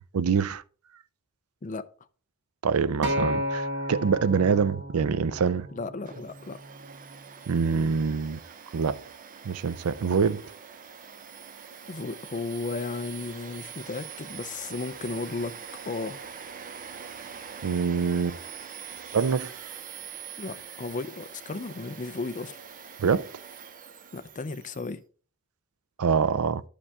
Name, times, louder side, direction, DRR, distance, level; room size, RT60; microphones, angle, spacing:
voice 1, 0.1-0.6 2.6-5.7 7.5-8.4 8.7-9.0 9.4-10.4 17.6-18.4 19.1-19.5 23.0-23.3 26.0-26.6, right 6 dB, 85° right, 0.5 m, -25 dB
Acoustic guitar, 3.0-7.3 8.1-8.2, equal, 55° right, 1.1 m, -33 dB
voice 2, 5.7-6.6 11.9-15.6 15.8-16.2 20.4-22.6 24.1-25.0, left 3 dB, 35° left, 0.5 m, -34 dB
Domestic sounds home sounds, 6.1-24.9, right 7 dB, 40° right, 0.6 m, -44 dB
11.0 x 5.1 x 3.5 m
head